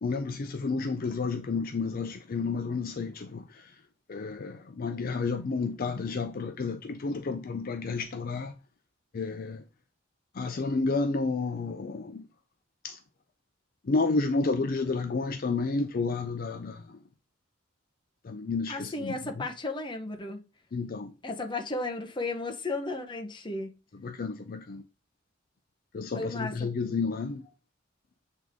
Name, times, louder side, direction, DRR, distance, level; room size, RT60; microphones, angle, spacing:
voice 1, 0.0-3.4 4.1-8.5 9.1-9.6 10.4-12.2 12.8-13.0 13.9-16.8 18.3-19.2 20.7-21.1 24.0-24.8 25.9-27.4, left 4 dB, 45° left, 0.5 m, -31 dB
voice 2, 18.7-20.4 21.2-23.8 26.1-26.7, left 2 dB, 25° left, 0.8 m, -34 dB
7.6 x 3.6 x 3.5 m
head